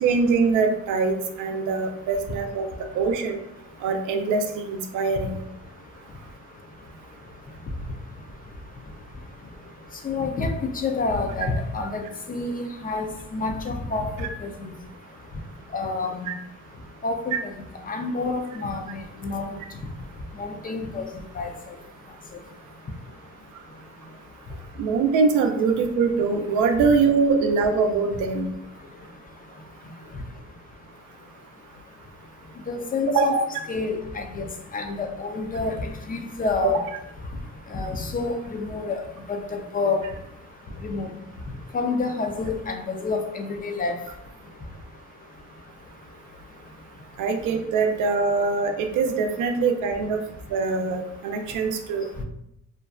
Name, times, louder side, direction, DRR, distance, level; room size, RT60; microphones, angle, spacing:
voice 1, 0.0-2.7 2.9-3.4 3.8-5.4 16.3-16.4 17.3-17.4 24.8-28.5 33.1-33.5 36.6-36.7 47.2-50.2 50.5-52.1, right 4 dB, 85° right, 5 dB, 0.5 m, -23 dB
voice 2, 10.0-13.1 13.3-14.1 14.4-14.5 15.7-16.3 17.0-17.4 17.9-19.6 20.4-21.0 21.4-21.5 32.7-33.3 33.7-34.5 34.7-35.8 36.1-36.8 37.7-39.0 39.3-40.1 40.8-41.1 41.7-44.0, left 3 dB, 30° left, 5 dB, 0.4 m, -28 dB
2.5 x 2.2 x 2.3 m, 0.80 s
cardioid pair, 90°, 30 cm